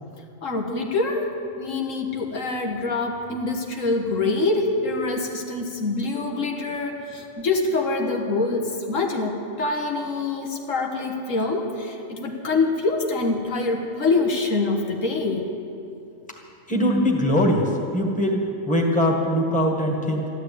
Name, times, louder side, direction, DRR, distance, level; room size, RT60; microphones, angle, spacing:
voice 1, 0.0-15.5, left 3 dB, 80° left, 2 dB, 1.7 m, -25 dB
voice 2, 16.7-20.3, equal, 5° left, 0 dB, 1.8 m, -22 dB
14.0 x 11.5 x 8.6 m, 2.7 s
omnidirectional pair, 1.3 m